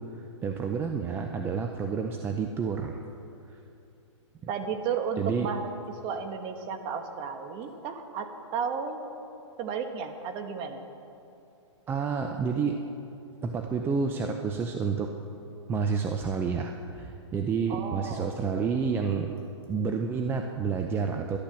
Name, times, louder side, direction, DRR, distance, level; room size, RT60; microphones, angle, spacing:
voice 1, 0.1-3.0 5.2-5.5 11.9-12.8 13.4-15.1 15.7-19.3 19.7-21.4, right 5 dB, 15° right, 4 dB, 0.6 m, -29 dB
voice 2, 4.5-5.7 6.0-9.0 9.6-10.8 17.7-18.6, right 6 dB, 30° right, 6 dB, 1.3 m, -33 dB
12.0 x 12.0 x 7.1 m, 2.8 s
hypercardioid pair, 140°, 16 cm